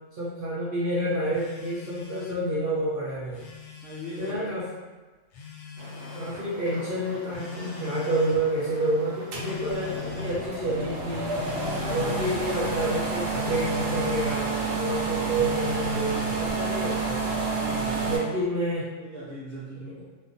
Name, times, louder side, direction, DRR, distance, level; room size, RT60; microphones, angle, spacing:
voice 1, 0.1-3.4 4.2-4.7 6.1-11.4 11.9-17.2 18.0-18.9, right 1 dB, 55° right, -9 dB, 0.7 m, -29 dB
Telephone, 1.3-2.4 3.2-4.4 5.3-6.4 7.3-8.4 9.3-10.5 11.3-12.4 13.3-14.4 15.3-16.5, left 6 dB, 70° left, 0.8 m, -37 dB
voice 2, 3.8-4.4 11.7-12.1 17.6-18.2 19.0-20.0, equal, 20° left, -12 dB, 1.0 m, -39 dB
sound 1, 5.8-15.4, right 1 dB, 20° right, 0.4 m, -43 dB
sound 2, 9.3-18.2, right 4 dB, 90° right, 1.0 m, -29 dB
2.4 x 2.3 x 2.5 m, 1.3 s
omnidirectional pair, 1.3 m